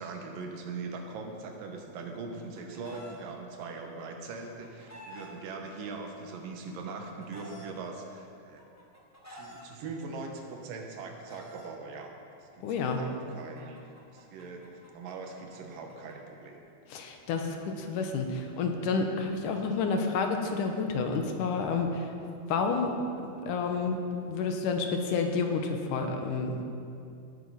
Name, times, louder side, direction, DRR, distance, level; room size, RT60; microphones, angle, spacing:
voice 1, 0.0-8.6 9.3-12.1 12.4-16.6, right 4 dB, 90° right, 3 dB, 3.0 m, -41 dB
Chicken rooster, 2.0-3.2 4.2-5.3 6.3-7.7 8.6-9.6 10.6-11.7 12.8-16.1, equal, 20° left, 0.4 m, -50 dB
voice 2, 12.6-13.0 16.9-22.1 22.5-22.9 23.5-26.6, left 4 dB, 75° left, 4 dB, 2.6 m, -30 dB
18.5 x 8.3 x 5.7 m, 2.6 s
omnidirectional pair, 3.8 m